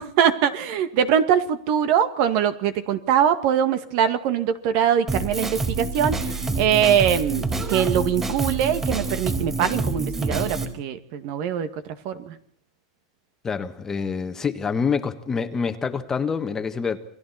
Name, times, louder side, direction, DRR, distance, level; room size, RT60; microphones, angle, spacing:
voice 1, 0.0-12.4, right 9 dB, 50° right, 2.1 m, -22 dB
Drum kit, 5.1-10.7, right 3 dB, 15° right, 4.4 m, -27 dB
voice 2, 13.4-17.0, left 5 dB, 15° left, 1.5 m, -26 dB
29.0 x 21.5 x 4.3 m
supercardioid pair, 140°, 3 cm